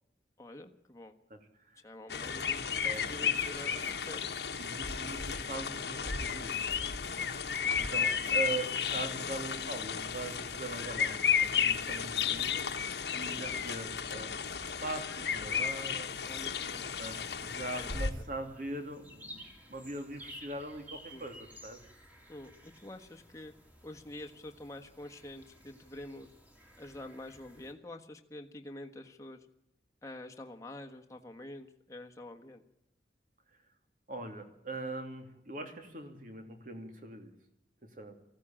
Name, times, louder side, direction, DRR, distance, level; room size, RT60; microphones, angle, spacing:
voice 1, 0.4-1.1 1.8-4.2 7.5-7.7 13.2-13.4 16.3-16.9 17.7-18.2 21.1-21.2 22.3-23.5 23.8-26.3 26.8-29.5 30.0-32.6, left 1 dB, 20° left, 4 dB, 1.4 m, -47 dB
sound 1, 2.1-18.1, left 7 dB, 70° left, 1.4 m, -33 dB
voice 2, 4.6-6.9 7.8-14.3 14.8-16.1 17.0-21.8 34.1-37.3 37.9-38.1, right 2 dB, 50° right, 6 dB, 2.9 m, -41 dB
sound 2, 17.0-27.7, equal, 10° right, 2.7 m, -54 dB
19.0 x 15.5 x 8.8 m, 0.84 s
head